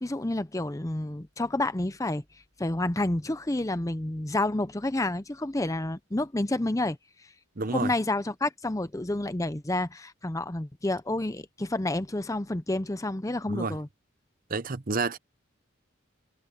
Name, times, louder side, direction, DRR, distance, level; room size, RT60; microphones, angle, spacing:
voice 1, 0.0-2.2 2.6-7.0 7.7-13.9, left 2 dB, 15° left, 0.6 m, -29 dB
voice 2, 7.6-7.9 13.5-13.8 14.5-15.2, right 3 dB, 40° right, 0.8 m, -29 dB
head